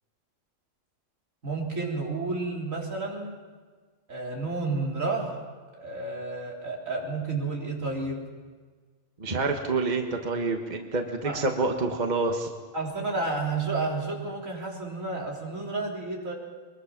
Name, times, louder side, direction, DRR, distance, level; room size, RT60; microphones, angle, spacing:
voice 1, 1.4-3.4 4.1-5.4 5.8-8.2 11.2-11.5 12.7-16.4, right 3 dB, 80° right, -2 dB, 4.1 m, -31 dB
voice 2, 9.2-12.5, right 3 dB, 35° right, 4 dB, 1.5 m, -27 dB
23.0 x 21.5 x 6.1 m, 1.5 s
omnidirectional pair, 1.4 m